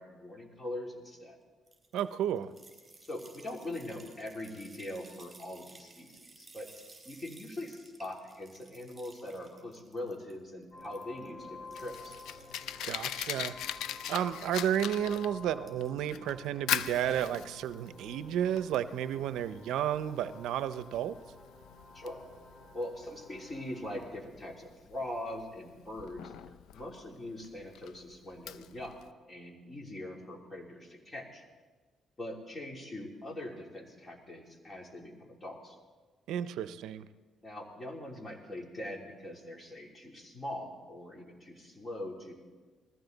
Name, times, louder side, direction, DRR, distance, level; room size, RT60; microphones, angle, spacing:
voice 1, 0.0-1.4 3.0-6.7 7.0-12.2 19.1-19.2 21.9-22.2 22.7-26.3 26.7-29.0 29.3-31.4 32.2-35.8 37.4-42.3, left 1 dB, 30° left, 0 dB, 3.2 m, -42 dB
sound 1, 1.7-10.3 10.6-11.3 11.7-12.7 13.2-14.4 15.6-16.0 16.3-16.5, right 3 dB, 20° right, 4.6 m, -57 dB
voice 2, 1.9-2.5 12.8-13.6 14.1-21.2 36.3-37.1, right 10 dB, 85° right, 13 dB, 0.5 m, -32 dB
sound 2, 10.7-24.1, left 3 dB, 45° left, 3.8 m, -51 dB
Fire, 11.4-29.1, left 10 dB, 85° left, 0.5 m, -41 dB
20.5 x 15.0 x 3.9 m, 1.4 s
cardioid pair, 90°, 0 cm